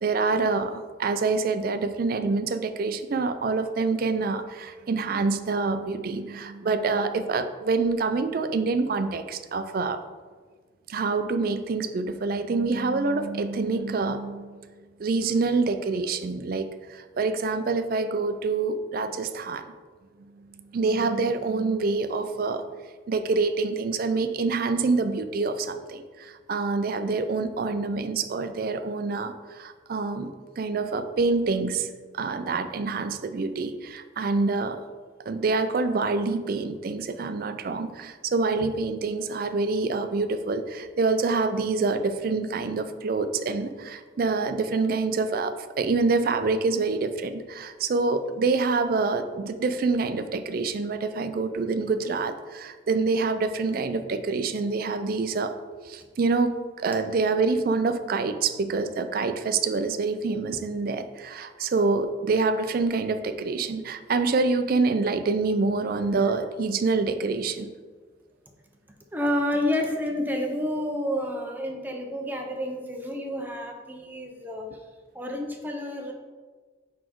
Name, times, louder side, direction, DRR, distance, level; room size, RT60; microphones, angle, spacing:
voice 1, 0.0-10.0 10.9-14.6 15.0-19.6 20.7-22.6 23.1-31.9 32.1-34.8 35.3-55.5 55.9-67.7, right 4 dB, 50° right, 9 dB, 0.4 m, -26 dB
voice 2, 69.1-74.7 75.1-76.1, left 1 dB, 10° right, 2 dB, 0.6 m, -29 dB
5.1 x 4.2 x 4.5 m, 1.5 s
head